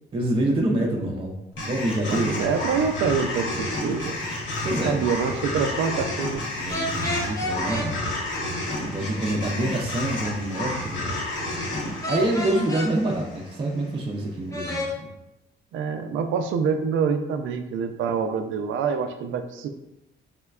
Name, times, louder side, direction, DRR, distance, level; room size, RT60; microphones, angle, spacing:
voice 1, 0.1-2.5 4.6-5.0 6.6-8.0 8.7-11.2 12.1-14.9, right 1 dB, 25° right, -1 dB, 0.5 m, -26 dB
sound 1, 1.6-13.9, left 1 dB, 75° left, 0.9 m, -31 dB
voice 2, 2.1-4.2 4.9-6.4 15.7-19.7, right 6 dB, 80° right, 7 dB, 0.4 m, -26 dB
sound 2, 6.7-7.9 12.0-12.9 14.5-14.9, left 1 dB, 15° left, 0.9 m, -29 dB
4.9 x 2.2 x 2.3 m, 0.90 s
cardioid pair, 90°, 20 cm